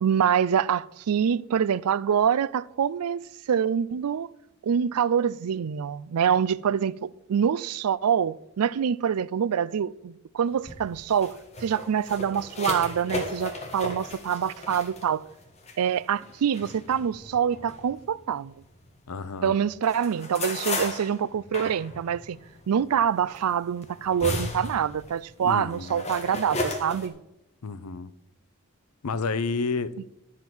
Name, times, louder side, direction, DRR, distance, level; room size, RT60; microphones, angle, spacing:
voice 1, 0.0-4.3 4.6-15.2 15.8-18.5 19.4-22.4 22.7-27.1, right 8 dB, 90° right, 0.4 m, -25 dB
sound 1, 10.5-19.1 19.4-27.1, left 2 dB, 30° left, 1.6 m, -36 dB
voice 2, 19.1-19.5 25.4-26.0 27.6-28.1 29.0-29.9, left 4 dB, 85° left, 0.6 m, -30 dB
10.5 x 7.4 x 6.0 m
head